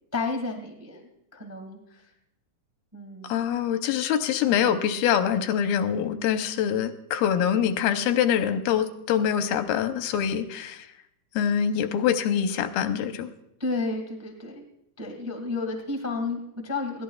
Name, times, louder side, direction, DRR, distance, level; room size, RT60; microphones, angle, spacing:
voice 1, 0.1-2.0 2.9-3.4 3.7-3.8 13.6-14.6 15.0-17.0, left 3 dB, 15° right, 2 dB, 0.5 m, -32 dB
voice 2, 3.2-10.9 11.4-13.3, left 9 dB, 90° left, 8 dB, 2.6 m, -24 dB
22.0 x 16.0 x 2.4 m, 0.79 s
omnidirectional pair, 4.2 m